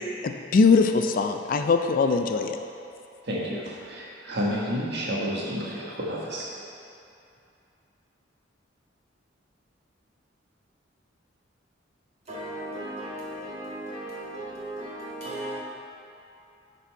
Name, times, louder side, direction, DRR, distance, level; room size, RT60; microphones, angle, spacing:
voice 1, 0.2-2.6, left 4 dB, 45° left, 0.3 m, -21 dB
voice 2, 3.2-6.5, equal, 60° right, 1.4 m, -30 dB
voice 3, 12.3-15.6, right 1 dB, 35° right, 1.8 m, -36 dB
10.0 x 4.1 x 4.5 m
head